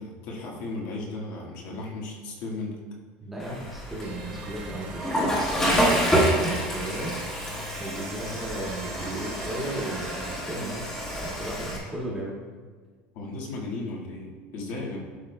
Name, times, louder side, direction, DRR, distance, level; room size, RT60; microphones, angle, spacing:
voice 1, 0.0-2.8 13.1-15.0, left 2 dB, 55° left, -1 dB, 1.6 m, -35 dB
voice 2, 3.2-5.1 5.5-7.1 7.8-10.8 11.2-12.4, right 1 dB, 5° right, -6 dB, 1.7 m, -35 dB
Water / Toilet flush, 3.4-11.8, equal, 10° left, 1.4 m, -28 dB
sound 1, 4.0-10.4, right 4 dB, 85° right, 0.9 m, -43 dB
12.0 x 6.0 x 2.2 m, 1.5 s
cardioid pair, 170°, 5 cm